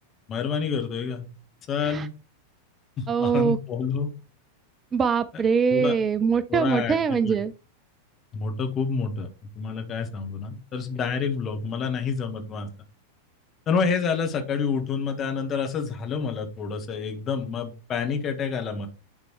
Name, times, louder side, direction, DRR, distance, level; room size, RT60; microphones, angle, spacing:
voice 1, 0.3-1.3 1.7-2.1 3.0-4.1 5.7-5.9 6.5-7.3 8.3-9.3 9.5-12.7 13.7-18.9, left 5 dB, 30° left, 1.5 m, -28 dB
voice 2, 3.1-3.6 4.9-7.5, right 6 dB, 20° right, 0.4 m, -23 dB
11.0 x 3.7 x 3.2 m
figure-of-eight pair, 90°, 0 cm